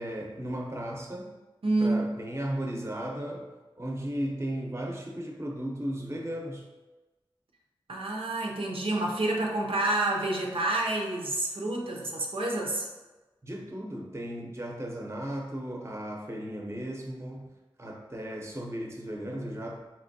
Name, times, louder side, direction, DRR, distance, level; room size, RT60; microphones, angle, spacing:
voice 1, 0.0-1.3 1.8-3.5 3.8-6.7 13.4-17.5 17.8-19.8, right 1 dB, 30° right, 0 dB, 0.7 m, -35 dB
voice 2, 1.6-2.1 7.9-12.9, right 2 dB, 85° right, -1 dB, 0.6 m, -28 dB
4.3 x 3.0 x 2.7 m, 1.2 s
wide cardioid pair, 45°, 9 cm